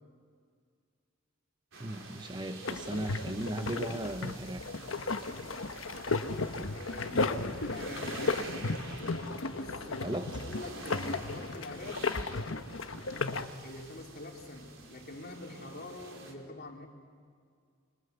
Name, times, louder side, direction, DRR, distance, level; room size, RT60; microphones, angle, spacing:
sound 1, 1.7-16.3, right 3 dB, 75° right, 4.1 m, -48 dB
voice 1, 1.8-4.6 10.0-10.3, right 1 dB, 25° right, 7 dB, 1.0 m, -36 dB
sound 2, 2.6-13.5, left 3 dB, 90° left, 1.2 m, -34 dB
voice 2, 6.7-8.2 9.4-12.1 13.6-16.9, left 2 dB, 50° left, 1 dB, 3.6 m, -45 dB
26.0 x 26.0 x 8.3 m, 2.1 s
head